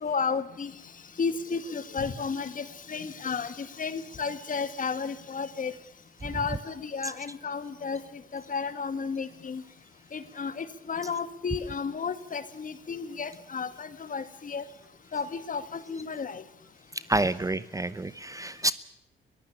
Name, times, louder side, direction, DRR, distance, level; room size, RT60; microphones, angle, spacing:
voice 1, 0.0-0.7 1.2-5.7 6.2-8.0 8.3-9.6 10.1-14.6 15.1-16.4, left 5 dB, 40° left, 12 dB, 2.1 m, -33 dB
voice 2, 16.9-18.7, right 2 dB, 15° right, 16 dB, 0.8 m, -29 dB
22.5 x 15.0 x 8.7 m, 0.77 s
cardioid pair, 90°, 20 cm